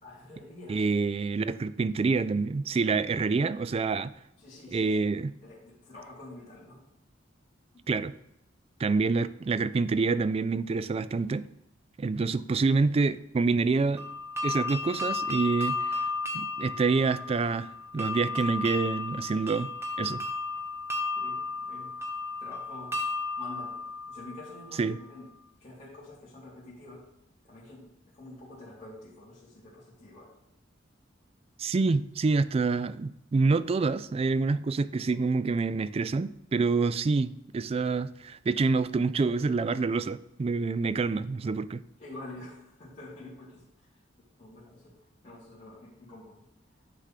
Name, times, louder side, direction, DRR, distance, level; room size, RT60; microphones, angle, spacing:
voice 1, 0.0-0.8 4.4-4.9 5.4-6.8 20.9-22.0 22.4-22.9 23.4-23.7 24.1-25.3 25.6-27.0 27.4-30.3 42.0-43.6 44.4-44.9 45.2-46.4, left 2 dB, 35° left, -9 dB, 2.6 m, -47 dB
voice 2, 0.7-4.1 4.7-5.3 7.9-8.1 8.8-11.5 12.0-14.0 14.4-17.7 17.9-19.7 20.0-20.2 24.8-25.0 31.6-41.8, right 4 dB, 30° right, 15 dB, 0.3 m, -27 dB
sound 1, 14.0-24.8, left 3 dB, 15° right, 1.1 m, -34 dB
9.9 x 3.4 x 5.7 m, 0.81 s
head